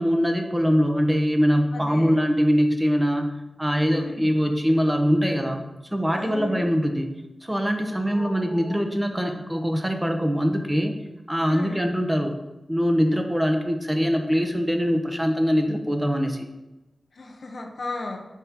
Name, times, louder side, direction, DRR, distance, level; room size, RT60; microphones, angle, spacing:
voice 1, 0.0-3.3 3.6-5.6 5.9-7.1 7.4-10.9 11.3-12.3 12.7-16.5, equal, 10° right, 4 dB, 0.8 m, -23 dB
voice 2, 1.7-2.2 3.9-4.3 6.2-6.6 8.1-8.8 11.5-11.8 17.2-18.2, left 3 dB, 65° left, 3 dB, 0.9 m, -35 dB
7.9 x 5.9 x 2.9 m, 1.0 s
wide cardioid pair, 75°, 0 cm